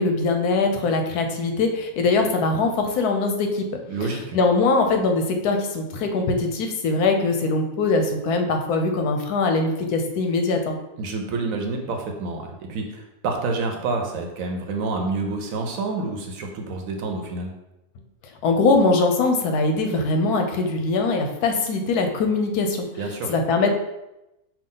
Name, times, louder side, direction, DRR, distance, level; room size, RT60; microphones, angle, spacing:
voice 1, 0.0-3.7 4.3-10.8 18.4-22.9 23.3-23.7, left 3 dB, 85° left, 4 dB, 1.2 m, -22 dB
voice 2, 3.9-4.4 11.0-17.5 23.0-23.3, right 3 dB, 70° right, 3 dB, 1.0 m, -28 dB
5.8 x 2.4 x 3.8 m, 0.93 s
omnidirectional pair, 1.6 m